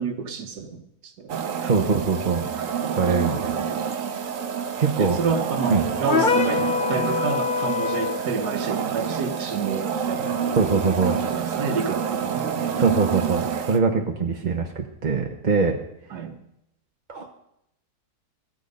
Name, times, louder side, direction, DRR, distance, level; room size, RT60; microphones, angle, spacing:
voice 1, 0.0-1.4 3.4-3.9 5.0-10.5 11.1-12.5 13.9-14.6 16.1-16.4, right 5 dB, 80° right, 4 dB, 1.6 m, -30 dB
sound 1, 1.3-13.8, right 7 dB, 60° right, 1.2 m, -28 dB
voice 2, 1.6-2.5 2.9-3.6 4.8-5.2 5.7-5.8 10.6-11.2 12.8-15.8 17.1-17.3, right 4 dB, 35° right, 3 dB, 0.9 m, -23 dB
sound 2, 6.1-8.3, left 6 dB, 40° left, 0.8 m, -24 dB
15.0 x 13.0 x 5.3 m, 0.81 s
omnidirectional pair, 1.7 m